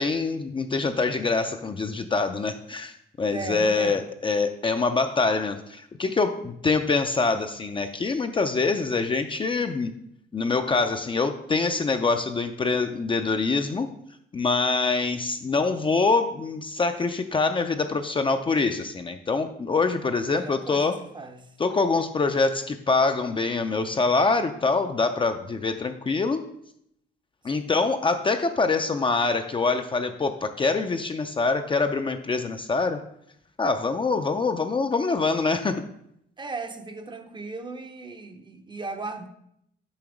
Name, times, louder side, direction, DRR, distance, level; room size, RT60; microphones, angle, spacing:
voice 1, 0.0-9.9 10.3-14.0 14.3-21.0 21.6-26.4 27.4-33.0 33.6-35.8, left 4 dB, 25° left, 0.4 m, -25 dB
voice 2, 3.3-4.0 20.3-21.5 27.5-27.8 36.4-39.3, right 3 dB, 25° right, 0.6 m, -37 dB
7.0 x 2.9 x 4.9 m
cardioid pair, 90°, 20 cm